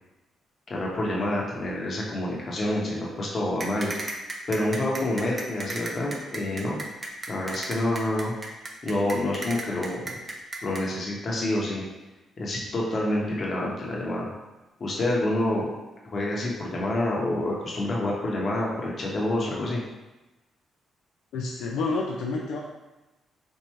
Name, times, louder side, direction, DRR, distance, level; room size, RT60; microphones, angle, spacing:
voice 1, 0.7-3.9 4.5-6.8 7.3-8.3 8.8-10.1 10.6-11.8 12.4-14.3 14.8-15.7 16.1-19.8, left 1 dB, 45° left, -3 dB, 1.0 m, -27 dB
sound 1, 3.6-10.8, right 2 dB, 30° right, 0.6 m, -34 dB
voice 2, 21.3-22.6, left 3 dB, 85° left, -2 dB, 0.4 m, -29 dB
4.5 x 2.6 x 3.0 m, 1.0 s
cardioid pair, 85°, 0 cm